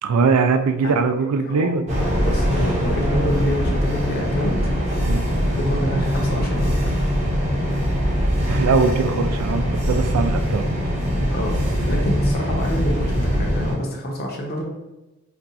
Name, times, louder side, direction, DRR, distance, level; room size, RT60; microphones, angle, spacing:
voice 1, 0.0-1.8 5.1-5.2 8.5-10.7, right 4 dB, 90° right, 8 dB, 0.3 m, -21 dB
sound 1, 1.9-13.8, equal, 30° right, 0.7 m, -22 dB
voice 2, 2.1-4.6 5.5-6.8 11.3-14.6, equal, 45° left, 0 dB, 0.7 m, -27 dB
2.5 x 2.3 x 3.9 m, 1.1 s
head